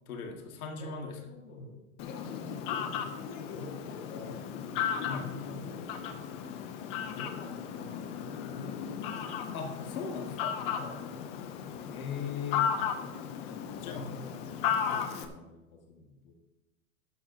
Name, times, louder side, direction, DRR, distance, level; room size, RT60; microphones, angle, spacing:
voice 1, 0.1-1.2 5.1-5.4 9.5-10.5 11.9-12.8 13.8-14.1, left 6 dB, 90° left, 3 dB, 2.0 m, -38 dB
voice 2, 1.3-4.4 5.4-6.0 7.0-8.7 10.8-11.1 13.4-14.3 14.9-16.3, left 3 dB, 75° left, 0 dB, 4.3 m, -48 dB
Fowl, 2.0-15.2, left 8 dB, 15° left, 0.3 m, -35 dB
12.5 x 11.5 x 2.7 m, 1.0 s
supercardioid pair, 145°, 41 cm